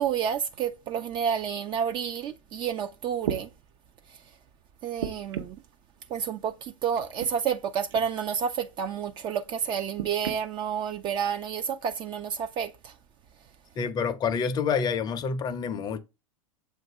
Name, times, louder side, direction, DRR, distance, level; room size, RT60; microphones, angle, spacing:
voice 1, 0.0-3.5 4.8-5.6 6.1-12.9, right 8 dB, 30° right, 0.4 m, -30 dB
sound 1, 2.7-2.8 3.2-3.5 5.0-5.7 6.9-7.3 7.9-8.1 9.9-10.4 11.3-11.4, right 8 dB, 55° right, 0.8 m, -34 dB
voice 2, 13.8-16.0, left 6 dB, 25° left, 0.6 m, -28 dB
7.6 x 2.5 x 4.9 m
figure-of-eight pair, 90°, 17 cm